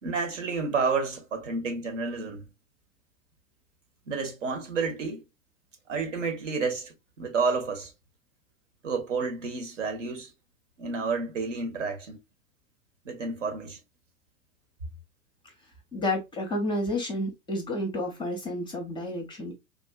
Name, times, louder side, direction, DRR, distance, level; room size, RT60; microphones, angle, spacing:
voice 1, 0.0-2.4 4.1-5.2 5.9-7.9 8.8-10.3 10.8-12.2 13.0-13.8, right 4 dB, 65° right, 1.2 m, -30 dB
voice 2, 15.9-19.5, left 1 dB, 10° left, 0.7 m, -30 dB
3.7 x 2.5 x 2.2 m
figure-of-eight pair, 95°, 41 cm